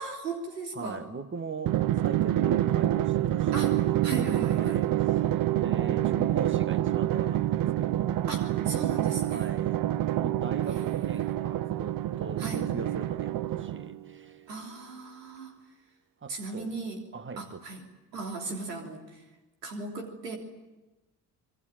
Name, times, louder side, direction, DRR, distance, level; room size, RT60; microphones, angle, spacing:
voice 1, 0.0-1.0 3.5-4.8 8.3-9.5 10.7-10.9 11.1-11.2 12.4-12.6 14.5-15.5 16.3-17.0 17.4-17.8 18.1-19.2 19.6-20.4, right 3 dB, 80° right, 3.4 m, -37 dB
voice 2, 0.7-3.9 4.6-8.2 9.3-14.5 16.2-16.8 17.1-17.6, right 4 dB, 25° right, 1.7 m, -41 dB
Drum, 1.7-14.0, right 13 dB, 45° right, 1.0 m, -27 dB
25.0 x 23.0 x 9.2 m
figure-of-eight pair, 50°, 48 cm